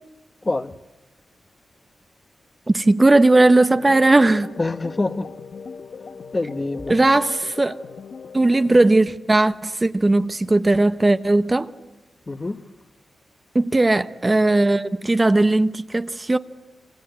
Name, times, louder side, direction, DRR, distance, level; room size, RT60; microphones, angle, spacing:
voice 1, 0.4-0.7 4.6-5.3 6.3-7.0 12.3-12.6, left 2 dB, 25° left, 1.0 m, -25 dB
voice 2, 2.7-4.5 6.9-7.8 8.3-11.7 13.5-16.4, right 2 dB, 20° right, 0.8 m, -17 dB
sound 1, 3.4-9.0, left 5 dB, 60° left, 1.0 m, -39 dB
27.0 x 26.0 x 8.0 m
wide cardioid pair, 130°, 0 cm